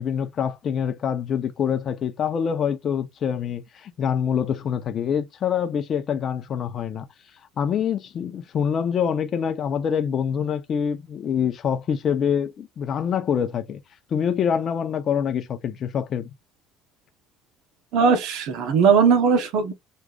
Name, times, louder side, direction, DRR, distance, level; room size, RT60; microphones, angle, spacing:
voice 1, 0.0-7.1 7.6-13.8 14.1-16.3, left 8 dB, 45° left, 0.7 m, -25 dB
voice 2, 17.9-19.7, right 6 dB, 70° right, 1.0 m, -19 dB
6.1 x 2.5 x 2.4 m
supercardioid pair, 95°, 0 cm